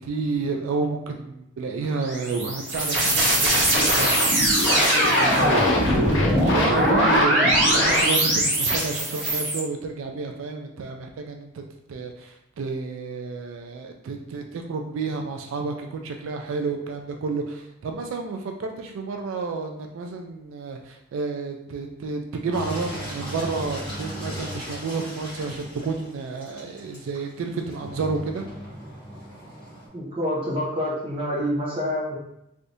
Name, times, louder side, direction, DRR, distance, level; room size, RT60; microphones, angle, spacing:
voice 1, 0.0-4.4 4.7-11.6 11.9-28.5, right 4 dB, 85° right, 3 dB, 0.3 m, -31 dB
sound 1, 2.0-9.6, right 1 dB, 55° right, 1.5 m, -21 dB
sound 2, 3.5-8.5, left 1 dB, 70° left, 0.6 m, -26 dB
Engine, 22.5-29.9, equal, 25° left, 1.5 m, -37 dB
voice 2, 29.9-32.2, equal, 30° right, -5 dB, 0.8 m, -27 dB
3.4 x 2.6 x 2.6 m, 0.82 s
head